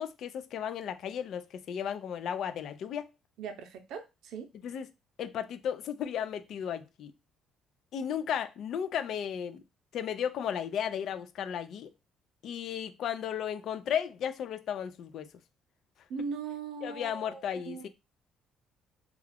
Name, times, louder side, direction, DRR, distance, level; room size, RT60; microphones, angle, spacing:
voice 1, 0.0-3.1 4.6-4.9 5.2-7.1 7.9-9.6 9.9-11.9 12.4-15.3 16.8-17.9, left 8 dB, 65° left, 0.4 m, -34 dB
voice 2, 3.4-4.5 16.1-17.9, right 5 dB, 75° right, 0.6 m, -39 dB
2.3 x 2.3 x 3.3 m
supercardioid pair, 80°, 0 cm